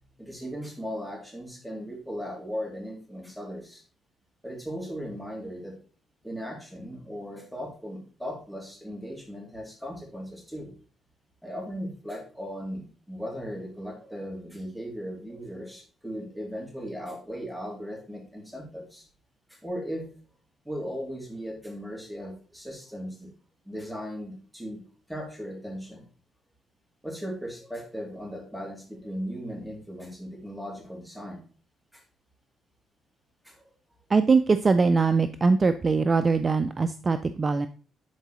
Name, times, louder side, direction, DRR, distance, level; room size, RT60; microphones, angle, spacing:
voice 1, 0.2-3.8 4.4-5.8 6.2-10.7 11.4-19.1 19.5-20.1 20.6-23.3 23.6-24.8 25.1-26.0 27.0-31.4 31.9-32.0 33.4-33.7, equal, ahead, 0 dB, 2.8 m, -37 dB
voice 2, 34.1-37.7, right 4 dB, 30° right, 11 dB, 0.4 m, -22 dB
10.5 x 4.6 x 3.1 m, 0.39 s
cardioid pair, 90°, 0 cm